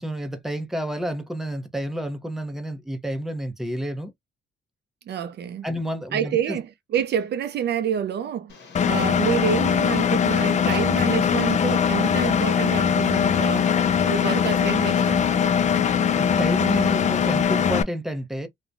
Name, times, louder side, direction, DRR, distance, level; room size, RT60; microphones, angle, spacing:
voice 1, 0.0-4.1 5.6-6.6 16.1-18.5, equal, ahead, 0.7 m, -30 dB
voice 2, 5.1-5.7 6.1-8.5 8.8-13.7 14.0-15.4, right 8 dB, 60° right, 0.4 m, -28 dB
Tick, 8.5-17.5, left 5 dB, 60° left, 1.0 m, -46 dB
Engine, 8.7-17.8, left 7 dB, 35° left, 0.4 m, -21 dB
3.0 x 2.2 x 2.5 m
cardioid pair, 90°, 20 cm